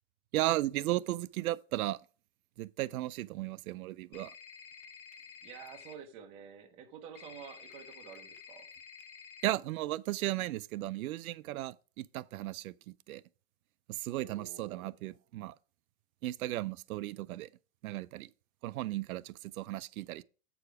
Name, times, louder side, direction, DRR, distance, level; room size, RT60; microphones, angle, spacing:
voice 1, 0.3-2.0 2.6-4.3 9.4-12.7 13.1-13.2 13.9-15.5 16.2-17.5 17.8-18.3 18.6-20.2, right 16 dB, 80° right, 0.5 m, -35 dB
sound 1, 4.1-5.9 7.2-9.5, left 6 dB, 45° left, 1.1 m, -51 dB
voice 2, 5.4-8.7 14.1-14.9, right 7 dB, 15° right, 0.5 m, -50 dB
7.8 x 4.9 x 4.7 m
supercardioid pair, 160°, 42 cm